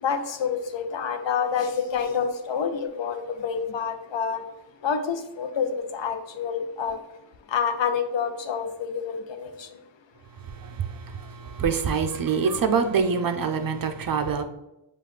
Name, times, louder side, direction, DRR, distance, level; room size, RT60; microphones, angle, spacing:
voice 1, 0.0-4.4 4.8-7.0 7.5-9.7, left 6 dB, 75° left, 0.6 m, -28 dB
voice 2, 10.5-14.4, right 6 dB, 50° right, 0.5 m, -25 dB
6.8 x 2.4 x 3.1 m
wide cardioid pair, 65°, 45 cm